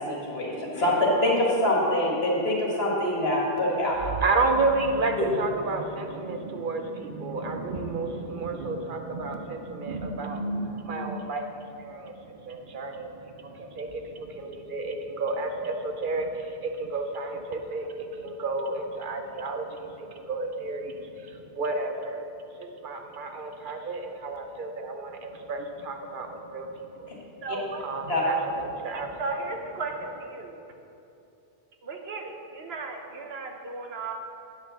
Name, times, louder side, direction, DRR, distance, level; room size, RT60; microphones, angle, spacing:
voice 1, 0.1-4.0 5.2-5.3 27.5-27.6 28.1-28.2, left 1 dB, 70° left, -3 dB, 2.1 m, -25 dB
voice 2, 4.0-22.3 22.6-27.2 27.5-29.5, right 3 dB, 60° right, 5 dB, 0.8 m, -31 dB
voice 3, 27.4-27.8 29.2-30.6 31.8-34.1, right 3 dB, 75° right, 3 dB, 1.2 m, -35 dB
8.8 x 5.7 x 6.8 m, 2.8 s
omnidirectional pair, 1.1 m